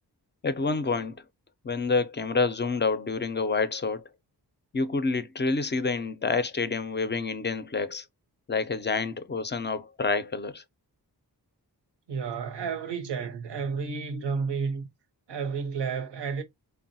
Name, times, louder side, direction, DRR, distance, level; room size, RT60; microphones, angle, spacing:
voice 1, 0.4-1.2 1.6-4.0 4.7-8.1 8.5-10.6, left 4 dB, 30° left, 0.4 m, -28 dB
voice 2, 12.1-14.9 15.3-16.4, right 5 dB, 80° right, 0.7 m, -31 dB
3.7 x 2.1 x 2.6 m
wide cardioid pair, 75°, 41 cm